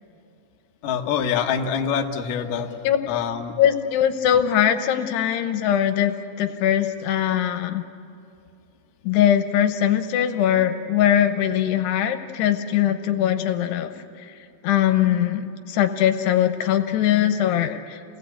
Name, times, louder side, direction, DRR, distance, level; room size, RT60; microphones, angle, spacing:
voice 1, 0.8-2.7 3.1-3.5, left 7 dB, 65° left, 2 dB, 2.4 m, -25 dB
voice 2, 3.6-7.8 9.0-13.9 14.6-18.0, left 10 dB, 85° left, 7 dB, 3.0 m, -21 dB
28.5 x 18.5 x 8.2 m, 2.6 s
omnidirectional pair, 4.7 m